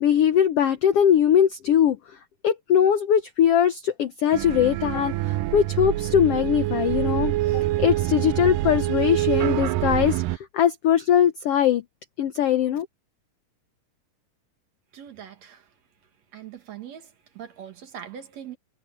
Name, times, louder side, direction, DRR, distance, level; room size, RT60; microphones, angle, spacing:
voice 1, 0.0-2.0 2.4-10.2 10.5-11.8 12.2-12.9, left 9 dB, 80° left, 1.3 m, -21 dB
sound 1, 4.3-10.4, right 16 dB, 80° right, 2.2 m, -25 dB
voice 2, 14.9-15.6 16.3-17.1 17.4-18.6, right 9 dB, 55° right, 2.7 m, -41 dB
omnidirectional pair, 3.9 m